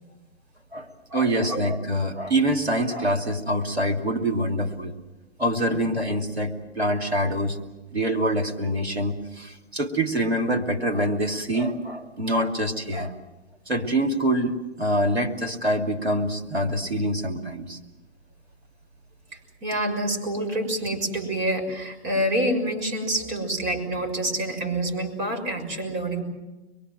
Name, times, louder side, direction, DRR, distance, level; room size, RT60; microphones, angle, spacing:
voice 1, 0.7-4.9 5.4-7.6 7.9-13.1 13.7-17.8, right 1 dB, 90° right, 3 dB, 2.7 m, -25 dB
voice 2, 19.3-26.2, right 1 dB, 35° right, 4 dB, 6.4 m, -27 dB
25.5 x 23.0 x 7.7 m, 1.1 s
figure-of-eight pair, 105°, 31 cm